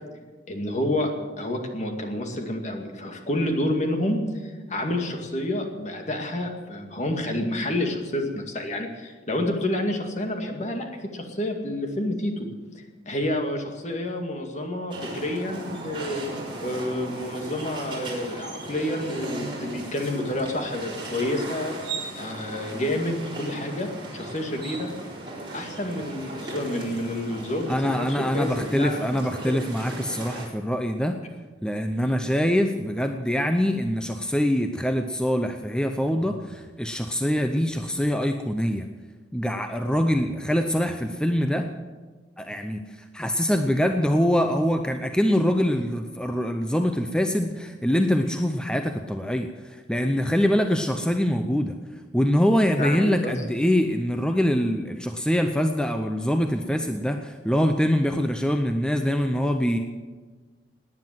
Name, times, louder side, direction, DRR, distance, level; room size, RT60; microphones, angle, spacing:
voice 1, 0.5-1.1 1.4-12.5 12.7-16.2 16.6-21.8 22.2-24.9 25.5-29.6 52.8-53.4, left 1 dB, 45° left, 4 dB, 2.2 m, -29 dB
sound 1, 14.9-30.5, right 2 dB, 30° right, 4.0 m, -37 dB
voice 2, 27.7-31.2 31.6-38.9 39.3-41.7 42.4-51.8 52.1-59.8, equal, 5° left, 6 dB, 0.7 m, -24 dB
18.5 x 9.7 x 7.6 m, 1.4 s
head